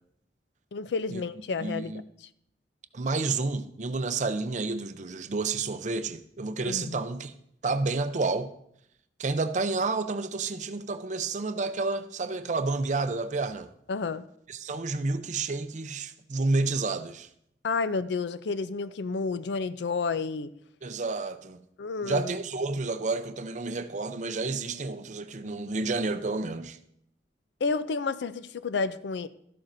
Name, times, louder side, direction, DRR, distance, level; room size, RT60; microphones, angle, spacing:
voice 1, 0.7-2.3 6.6-7.0 13.9-14.3 17.6-20.5 21.8-22.3 27.6-29.3, left 4 dB, 75° left, 0.4 m, -30 dB
voice 2, 1.6-2.0 2.9-7.3 7.6-8.5 9.2-13.7 14.5-17.3 20.8-21.6 22.0-26.8, right 3 dB, 40° right, 0.5 m, -30 dB
12.5 x 11.5 x 2.6 m
head